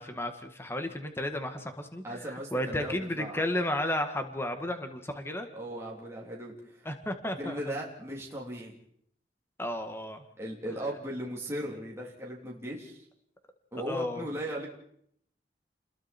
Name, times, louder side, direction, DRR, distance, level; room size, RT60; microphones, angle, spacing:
voice 1, 0.0-5.5 6.9-7.7 9.6-10.2 13.9-14.2, left 1 dB, 15° left, 6 dB, 2.0 m, -33 dB
voice 2, 2.0-3.5 5.5-6.9 7.4-8.8 10.4-13.0 13.7-14.7, equal, 15° right, -3 dB, 3.6 m, -37 dB
30.0 x 21.5 x 4.6 m, 0.68 s
head